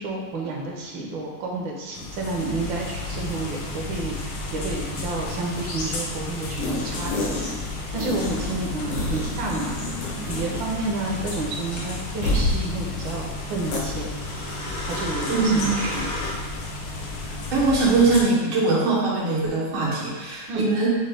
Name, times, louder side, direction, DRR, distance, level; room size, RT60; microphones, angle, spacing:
voice 1, 0.0-7.7 7.9-9.8 10.3-14.1 14.9-16.1 20.5-20.7, right 2 dB, 75° right, -1 dB, 1.4 m, -30 dB
sound 1, 1.9-18.2, left 3 dB, 75° left, 1.4 m, -33 dB
sound 2, 6.6-7.7 8.0-10.8 11.0-11.2 12.2-12.6 13.7-13.8, left 1 dB, 90° left, 1.8 m, -28 dB
sound 3, 11.7-11.9 13.8-16.3, left 1 dB, 55° left, 1.0 m, -33 dB
voice 2, 15.3-15.8 17.5-20.9, right 3 dB, 90° right, -5 dB, 1.9 m, -21 dB
6.4 x 2.2 x 3.2 m, 1.3 s
omnidirectional pair, 2.3 m